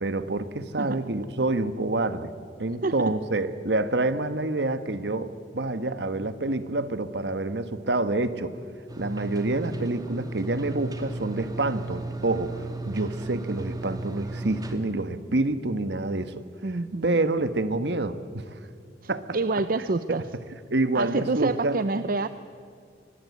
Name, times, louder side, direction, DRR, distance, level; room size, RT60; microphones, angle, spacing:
voice 1, 0.0-2.3 2.6-8.6 9.0-16.4 17.0-18.4 19.1-19.2 20.7-21.8, right 2 dB, 70° right, 12 dB, 1.2 m, -27 dB
sound 1, 8.9-14.7, right 2 dB, 20° right, 2.1 m, -35 dB
voice 2, 16.6-17.2 19.3-20.2 20.9-22.3, right 3 dB, 50° right, 12 dB, 0.6 m, -27 dB
24.0 x 19.5 x 8.4 m, 2.2 s
head